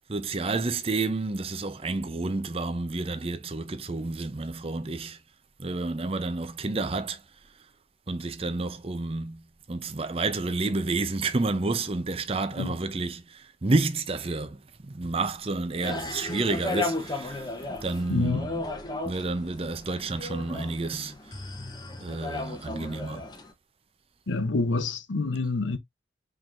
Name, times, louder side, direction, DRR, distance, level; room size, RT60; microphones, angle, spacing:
voice 1, 0.1-5.2 5.6-7.2 8.1-9.4 9.7-14.6 14.8-17.5 17.8-18.6 19.0-21.1 22.0-23.3, right 3 dB, 30° right, 0.6 m, -30 dB
sound 1, 15.8-23.5, left 2 dB, 20° left, 0.8 m, -35 dB
voice 2, 18.1-18.4 24.3-25.8, left 3 dB, 85° left, 0.7 m, -27 dB
4.6 x 3.7 x 2.5 m
head